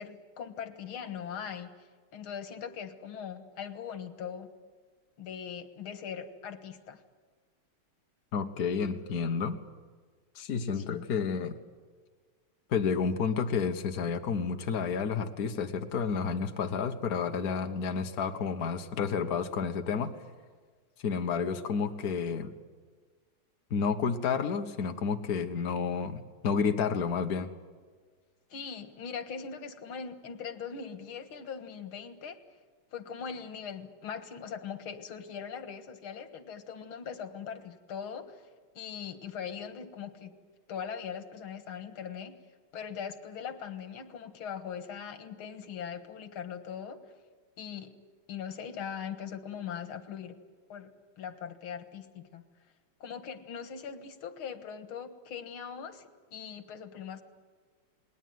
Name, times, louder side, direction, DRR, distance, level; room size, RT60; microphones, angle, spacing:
voice 1, 0.0-4.5 5.2-7.0 10.7-11.1 28.5-32.4 32.9-38.5 38.8-40.3 40.7-42.3 42.7-47.0 47.6-47.9 48.3-50.3 50.7-50.9 51.2-52.4 53.0-57.2, left 7 dB, 90° left, 9 dB, 2.3 m, -40 dB
voice 2, 8.3-9.6 10.3-11.6 12.7-20.1 21.0-22.5 23.7-27.5, left 6 dB, 50° left, 6 dB, 1.6 m, -30 dB
28.5 x 20.0 x 9.4 m, 1.5 s
omnidirectional pair, 2.2 m